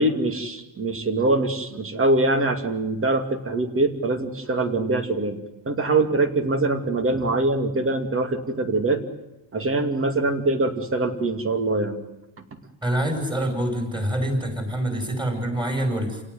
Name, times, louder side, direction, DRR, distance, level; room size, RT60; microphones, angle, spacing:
voice 1, 0.0-5.4 5.7-9.0 9.5-12.0, right 2 dB, 25° right, 7 dB, 2.6 m, -23 dB
voice 2, 12.8-16.2, right 1 dB, 10° right, 5 dB, 5.8 m, -26 dB
29.5 x 18.0 x 9.5 m, 0.95 s
cardioid pair, 170°, 47 cm